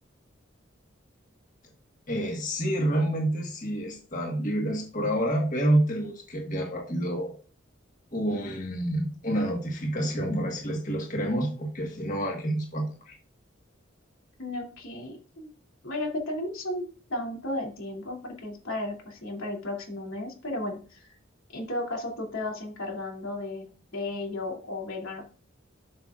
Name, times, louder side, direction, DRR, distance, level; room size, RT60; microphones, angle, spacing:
voice 1, 2.1-7.3 8.1-13.1, right 1 dB, 40° left, 1 dB, 1.5 m, -28 dB
voice 2, 14.4-15.5 15.8-21.1 21.5-23.6 23.9-25.3, left 1 dB, 90° left, 0 dB, 2.8 m, -34 dB
12.5 x 6.0 x 2.5 m, 0.38 s
head